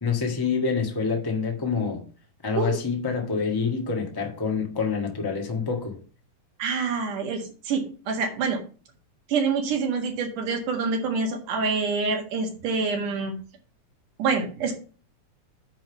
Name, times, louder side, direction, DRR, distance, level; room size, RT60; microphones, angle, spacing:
voice 1, 0.0-2.0 2.4-6.0, left 5 dB, 35° left, 0.3 m, -27 dB
voice 2, 6.6-8.6 9.3-13.3 14.2-14.7, right 4 dB, 85° right, 3.3 m, -26 dB
10.0 x 3.5 x 6.9 m
omnidirectional pair, 3.6 m